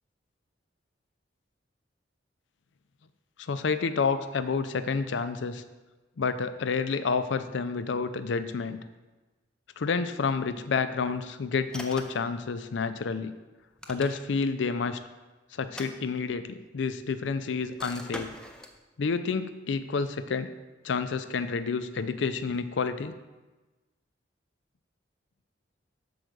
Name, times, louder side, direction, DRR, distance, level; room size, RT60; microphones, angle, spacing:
voice 1, 3.4-5.6 6.2-8.8 9.8-13.3 13.9-15.0 15.5-18.3 19.0-20.5 20.8-23.2, left 5 dB, 70° left, 11 dB, 0.4 m, -29 dB
sound 1, 11.7-12.3 13.6-14.5 15.6-16.6 17.8-18.8, left 1 dB, 5° left, 0.5 m, -42 dB
6.6 x 4.7 x 6.2 m, 1.2 s
head